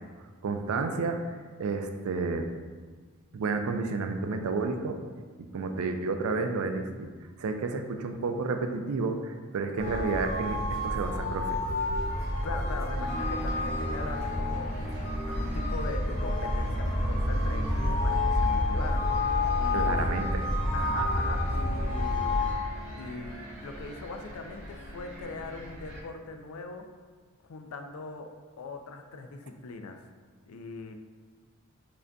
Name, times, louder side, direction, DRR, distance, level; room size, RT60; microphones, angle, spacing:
voice 1, 0.4-1.2 1.6-2.5 3.3-5.0 5.5-7.1 7.4-11.6 19.7-20.5, right 4 dB, 85° right, 5 dB, 0.4 m, -31 dB
sound 1, 9.8-22.5, left 2 dB, 30° left, 1.1 m, -29 dB
voice 2, 12.4-19.0 19.6-20.1 20.7-22.4 23.0-26.8 27.4-28.3 28.6-30.0 30.5-30.9, left 3 dB, 75° left, 5 dB, 0.4 m, -40 dB
sound 2, 12.9-26.0, right 1 dB, 65° right, 1.0 m, -41 dB
4.9 x 2.6 x 2.2 m, 1.5 s
head